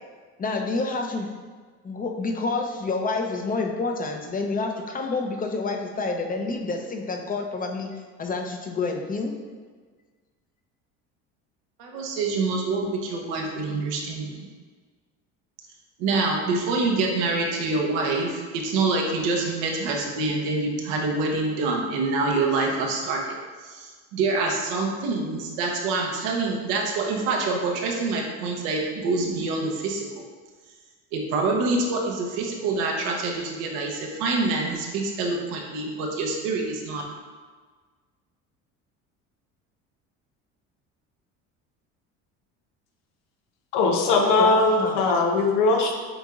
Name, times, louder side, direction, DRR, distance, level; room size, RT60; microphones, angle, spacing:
voice 1, 0.4-1.3 1.8-7.9 8.2-9.3 44.0-45.1, left 3 dB, 25° left, 2 dB, 0.7 m, -28 dB
voice 2, 11.8-14.5 16.0-23.4 23.6-30.0 31.1-37.0, right 3 dB, 80° right, 0 dB, 0.9 m, -26 dB
voice 3, 43.7-45.9, left 3 dB, 90° left, 2 dB, 0.8 m, -20 dB
7.8 x 2.8 x 2.4 m, 1.5 s
supercardioid pair, 85°, 35 cm